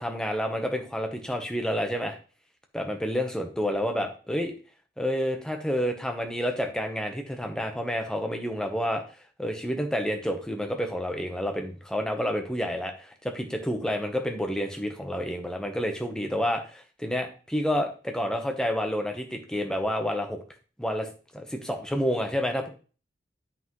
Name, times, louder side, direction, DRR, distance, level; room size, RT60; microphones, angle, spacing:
voice 1, 0.0-2.2 2.7-4.6 5.0-9.0 9.4-20.4 20.8-21.1 21.3-22.7, equal, 5° left, 3 dB, 0.9 m, -29 dB
8.1 x 5.9 x 3.1 m, 0.37 s
head